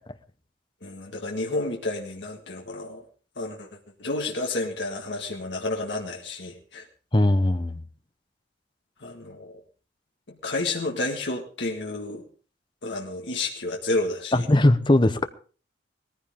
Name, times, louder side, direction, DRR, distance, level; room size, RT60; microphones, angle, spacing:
voice 1, 0.8-3.0 3.4-3.7 4.0-6.8 9.0-9.6 10.4-12.2 12.8-14.4, left 2 dB, 80° left, 1 dB, 1.8 m, -30 dB
voice 2, 7.1-7.8 14.3-15.3, left 1 dB, 25° left, 11 dB, 0.9 m, -19 dB
19.0 x 14.5 x 3.7 m, 0.39 s
head